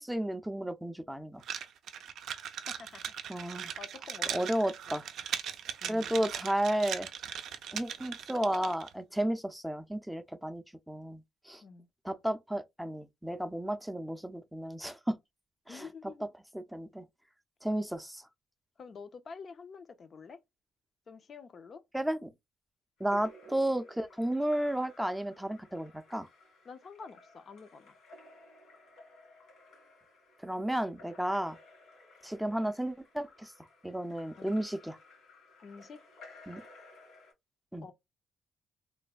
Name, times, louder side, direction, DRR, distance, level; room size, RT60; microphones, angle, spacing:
voice 1, 0.0-1.4 3.3-3.7 4.3-5.0 5.9-7.1 7.7-11.6 12.0-15.2 15.7-15.9 16.5-17.1 17.6-18.3 21.9-22.3 23.0-26.3 30.4-31.6 32.2-33.5 33.8-35.0 36.5-36.6 37.7-37.9, right 1 dB, 5° right, 0.4 m, -33 dB
sound 1, 1.4-8.9, right 9 dB, 75° right, 0.4 m, -39 dB
voice 2, 2.7-3.1 3.8-4.5 4.9-5.0 5.8-6.2 11.6-11.9 15.7-16.3 18.8-20.4 21.1-21.8 26.7-28.0 34.4-34.6 35.6-36.0 37.8-37.9, left 5 dB, 50° left, 0.5 m, -48 dB
Splash splatter / Drip / Trickle dribble, 23.0-37.3, left 1 dB, 75° left, 2.0 m, -56 dB
3.2 x 2.1 x 2.3 m
cardioid pair, 90°, 0 cm